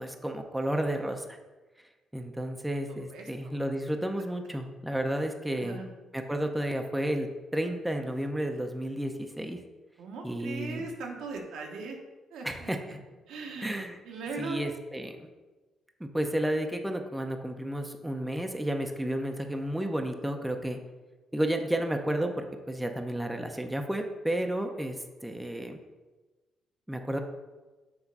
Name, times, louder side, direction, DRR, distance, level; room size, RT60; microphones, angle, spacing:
voice 1, 0.0-1.4 2.1-5.8 6.1-7.3 7.5-9.6 10.2-10.9 12.4-13.0 13.6-14.0 14.4-15.2 16.0-20.8 21.3-25.0 25.2-25.8 26.9-27.2, right 1 dB, 5° right, 4 dB, 0.7 m, -32 dB
voice 2, 5.6-5.9 10.0-12.0 12.3-12.7 13.3-13.7 14.0-14.6, right 4 dB, 85° right, 1 dB, 1.1 m, -39 dB
7.1 x 3.2 x 5.4 m, 1.2 s
cardioid pair, 90°, 0 cm